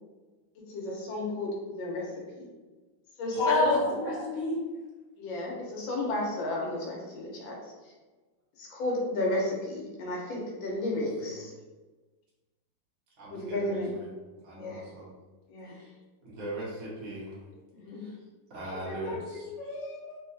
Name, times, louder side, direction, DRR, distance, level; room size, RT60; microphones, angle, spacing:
voice 1, 0.7-2.0 2.3-2.5 3.2-3.7 5.2-7.5 8.6-11.5 13.3-13.9 14.6-14.8 15.5-15.8 17.7-18.0, left 2 dB, 90° left, -2 dB, 1.5 m, -32 dB
voice 2, 3.3-4.6 18.7-20.2, left 2 dB, 70° left, -4 dB, 1.4 m, -32 dB
voice 3, 10.9-11.4 13.2-14.1 14.4-15.1 15.6-15.9 16.2-17.4 17.9-18.1 18.5-19.5, right 1 dB, 55° right, -7 dB, 0.8 m, -41 dB
3.6 x 2.3 x 2.6 m, 1.3 s
omnidirectional pair, 2.1 m